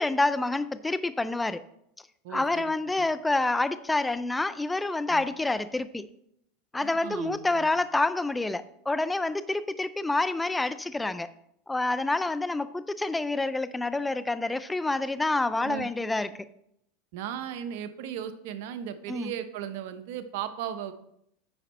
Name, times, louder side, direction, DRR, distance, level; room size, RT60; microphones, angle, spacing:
voice 1, 0.0-1.6 2.3-6.1 6.7-11.3 11.7-16.3 19.1-19.3, left 2 dB, 10° left, 14 dB, 0.4 m, -28 dB
voice 2, 2.2-2.6 5.1-5.2 6.8-7.7 15.6-15.9 17.1-20.9, right 9 dB, 70° right, 10 dB, 0.8 m, -36 dB
9.2 x 5.3 x 4.2 m, 0.74 s
hypercardioid pair, 110°, 0 cm